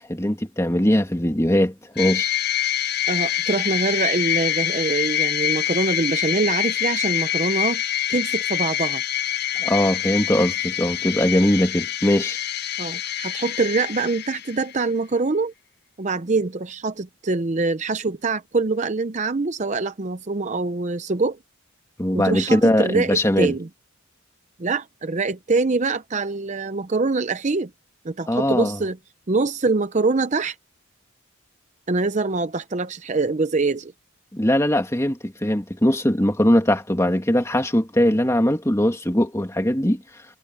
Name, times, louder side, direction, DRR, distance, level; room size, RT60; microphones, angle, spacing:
voice 1, 0.1-2.3 9.6-12.4 22.0-23.5 28.3-28.8 34.3-40.0, left 1 dB, 15° left, 2.2 m, -20 dB
sound 1, 2.0-14.8, left 12 dB, 50° left, 0.7 m, -25 dB
voice 2, 3.1-7.8 8.1-9.0 12.8-15.5 16.0-21.4 22.1-23.7 24.6-27.7 28.0-29.0 29.3-30.6 31.9-33.9, right 3 dB, 35° right, 0.6 m, -24 dB
head